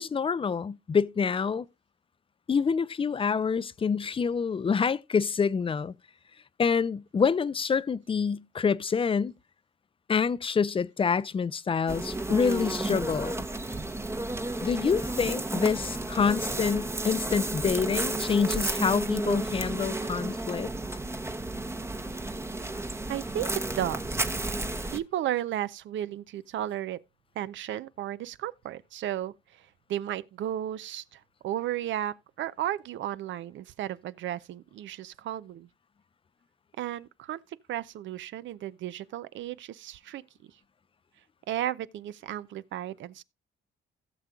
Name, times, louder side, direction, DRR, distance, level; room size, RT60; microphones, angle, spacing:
voice 1, 0.0-1.7 2.5-5.9 6.6-9.3 10.1-13.5 14.6-20.7, left 6 dB, 25° left, 0.5 m, -27 dB
sound 1, 11.9-25.0, right 2 dB, 15° right, 0.8 m, -32 dB
voice 2, 23.1-27.0 27.4-35.7 36.8-37.4 37.7-40.5 41.5-43.2, right 12 dB, 75° right, 0.6 m, -34 dB
17.0 x 6.9 x 2.3 m
cardioid pair, 90°, 20 cm